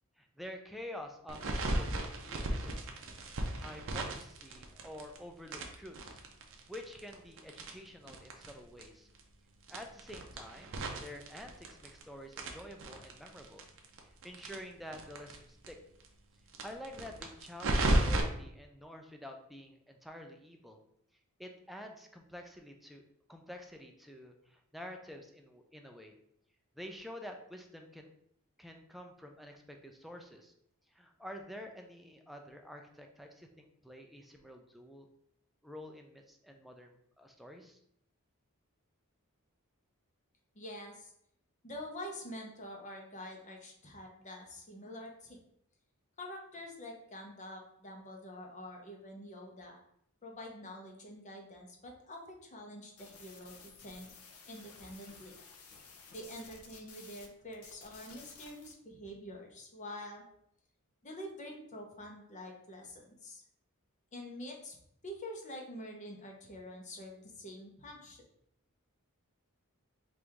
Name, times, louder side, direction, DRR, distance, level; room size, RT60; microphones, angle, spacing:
voice 1, 0.2-2.9 3.6-6.2 6.7-9.1 9.7-13.6 14.2-15.8 16.6-20.8 21.4-23.0 23.3-26.2 26.8-28.1 28.6-30.5 30.9-35.1 35.6-37.8, left 1 dB, ahead, 3 dB, 0.4 m, -49 dB
sound 1, 1.3-5.2 5.5-8.5 8.8-8.9 9.1-9.2 9.6-12.0 12.3-15.4 15.6-15.7 16.0-16.1 16.5-18.2, right 1 dB, 65° right, 0.7 m, -34 dB
voice 2, 40.5-41.1 41.6-45.4 46.2-49.8 50.2-54.1 54.5-55.3 56.1-60.2 61.0-63.4 64.1-64.8 65.0-68.2, left 1 dB, 35° left, 1 dB, 0.8 m, -46 dB
sound 2, 53.0-57.3 57.5-58.7, left 4 dB, 70° left, 0.7 m, -54 dB
4.6 x 2.6 x 3.4 m, 0.71 s
head